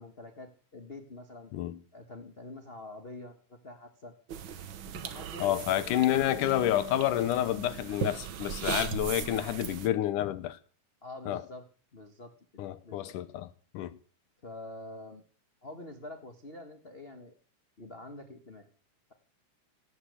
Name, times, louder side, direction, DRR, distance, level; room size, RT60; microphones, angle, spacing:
voice 1, 0.0-1.5 1.9-4.1 4.8-6.4 11.0-11.6 11.9-12.3 12.8-13.2 14.4-15.2 15.6-17.3 17.8-18.7, left 2 dB, 35° left, 0.9 m, -46 dB
sound 1, 4.3-9.9, right 8 dB, 65° right, 1.2 m, -38 dB
voice 2, 5.4-10.6 11.3-11.4 12.6-13.5 13.7-14.0, left 13 dB, 80° left, 2.4 m, -29 dB
17.5 x 8.5 x 8.3 m
omnidirectional pair, 3.7 m